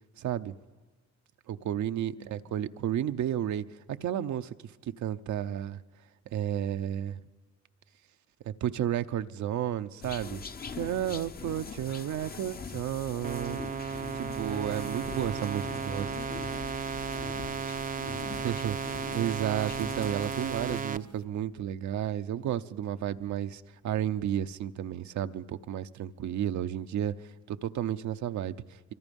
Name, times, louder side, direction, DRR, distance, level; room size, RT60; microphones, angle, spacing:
voice 1, 0.2-0.5 1.5-4.5 4.8-5.8 6.3-7.2 8.4-10.4 10.7-13.6 14.2-16.1 18.3-18.8 19.1-27.1 27.5-28.6, right 10 dB, 70° right, 9 dB, 0.8 m, -32 dB
voice 2, 2.2-2.5 11.9-12.5, left 4 dB, 75° left, 4 dB, 8.0 m, -58 dB
sound 1, 10.0-20.8, left 5 dB, 30° left, 0.9 m, -42 dB
sound 2, 13.2-21.0, right 6 dB, 25° right, 0.6 m, -35 dB
24.5 x 24.5 x 5.4 m, 1.3 s
cardioid pair, 90°, 30 cm